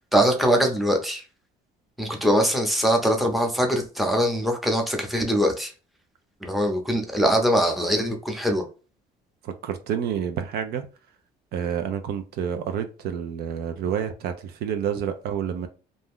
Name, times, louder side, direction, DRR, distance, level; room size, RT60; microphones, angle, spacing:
voice 1, 0.1-1.2 2.0-5.7 6.4-8.6, equal, ahead, 0.7 m, -22 dB
voice 2, 9.4-10.9 11.5-15.7, right 8 dB, 70° right, 0.5 m, -29 dB
2.6 x 2.2 x 3.5 m
cardioid pair, 110°, 17 cm